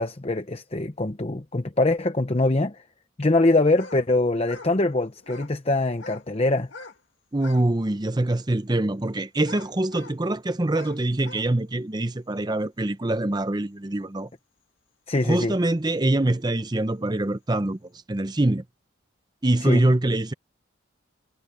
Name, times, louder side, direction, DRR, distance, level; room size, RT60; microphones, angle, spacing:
voice 1, 0.0-2.8 3.2-6.7 15.1-15.5 19.6-19.8, left 2 dB, 30° left, 0.8 m, -23 dB
sound 1, 3.7-4.0 4.4-4.8 5.2-5.6 5.9-6.3 6.6-7.0 7.3-7.7 8.2-8.3 9.4-10.2 10.7-11.5, left 3 dB, 60° left, 2.3 m, -43 dB
voice 2, 7.3-14.3 15.2-18.6 19.4-20.3, right 1 dB, 20° right, 0.6 m, -24 dB
head